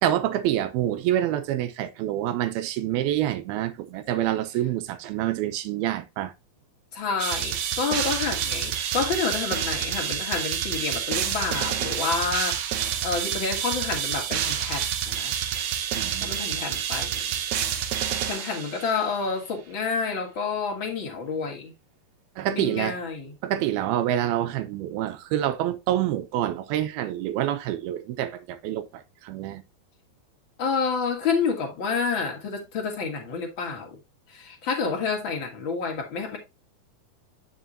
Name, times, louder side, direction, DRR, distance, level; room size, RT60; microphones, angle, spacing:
voice 1, 0.0-6.3 16.0-16.4 22.4-23.0 23.4-29.6, right 12 dB, 90° right, 2.7 m, -27 dB
voice 2, 6.9-15.4 16.2-17.3 18.3-21.7 22.5-23.3 30.6-33.9 34.3-36.4, left 5 dB, 35° left, 2.6 m, -29 dB
sound 1, 7.2-19.1, right 9 dB, 65° right, 2.0 m, -28 dB
9.3 x 6.6 x 2.8 m
omnidirectional pair, 4.4 m